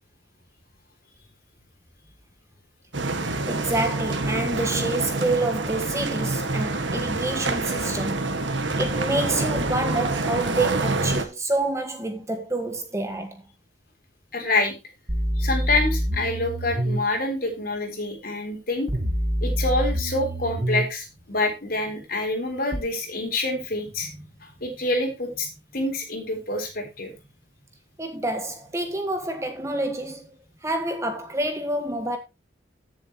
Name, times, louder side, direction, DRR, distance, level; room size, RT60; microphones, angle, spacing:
sound 1, 2.9-11.2, right 2 dB, 90° right, 1.7 m, -26 dB
voice 1, 3.4-8.3 8.8-13.4 28.0-30.3 30.6-32.2, right 2 dB, 15° right, 1.5 m, -28 dB
voice 2, 14.3-14.7 15.4-18.9 19.4-24.1 24.6-25.5 25.7-27.1, left 2 dB, 50° left, 3.8 m, -26 dB
sound 2, 15.1-17.0 18.9-20.9 22.7-22.8, equal, 35° right, 1.7 m, -26 dB
15.5 x 7.2 x 3.0 m
head